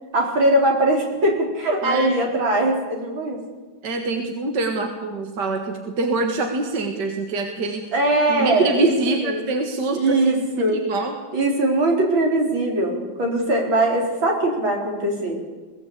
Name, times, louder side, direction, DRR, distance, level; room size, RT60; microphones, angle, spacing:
voice 1, 0.1-3.4 7.9-9.4 9.9-10.8 11.3-15.4, right 1 dB, 80° right, 0 dB, 4.8 m, -21 dB
voice 2, 3.8-7.8 8.3-11.2, right 3 dB, 60° right, 4 dB, 2.3 m, -25 dB
22.0 x 17.0 x 8.4 m, 1.3 s
omnidirectional pair, 2.1 m